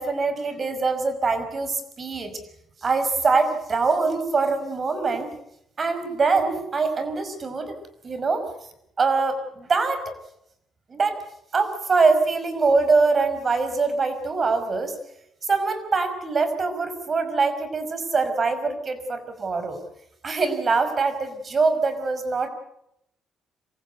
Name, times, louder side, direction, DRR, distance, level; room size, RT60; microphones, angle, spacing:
voice 1, 0.0-2.4 2.8-5.3 5.8-7.8 8.0-8.5 9.0-10.1 10.9-11.2 11.5-15.0 15.5-19.8 20.2-22.5, right 4 dB, 40° right, 10 dB, 5.4 m, -23 dB
27.0 x 15.5 x 8.0 m, 0.77 s
cardioid pair, 90°, 0 cm